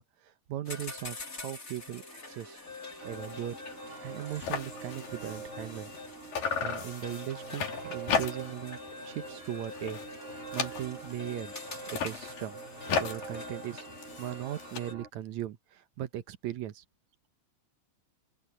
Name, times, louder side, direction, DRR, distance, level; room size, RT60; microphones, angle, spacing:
voice 1, 0.0-2.6 3.0-5.9 6.6-8.8 9.1-10.0 10.5-12.6 13.0-13.9 14.2-16.8, right 12 dB, 70° right, 2.0 m, -39 dB
sound 1, 0.7-14.9, left 3 dB, 25° left, 4.9 m, -45 dB
sound 2, 3.0-15.1, right 5 dB, 90° right, 8.5 m, -46 dB
sound 3, 3.2-3.4 3.8-3.9 4.1-6.1 6.3-8.7 9.0-9.4 9.7-11.2 11.8-14.8, left 6 dB, 75° left, 4.3 m, -35 dB
open air
omnidirectional pair, 3.9 m